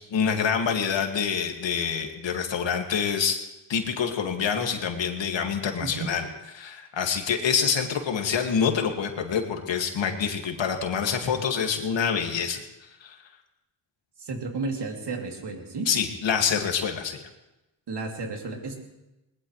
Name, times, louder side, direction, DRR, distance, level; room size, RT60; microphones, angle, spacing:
voice 1, 0.0-3.4 3.7-6.3 6.5-12.6 13.0-13.1 15.9-17.2, left 7 dB, 75° left, 3 dB, 2.2 m, -26 dB
voice 2, 14.2-15.9 17.9-18.8, right 3 dB, 60° right, 1 dB, 3.0 m, -32 dB
21.0 x 20.0 x 3.3 m, 0.98 s
cardioid pair, 85°, 45 cm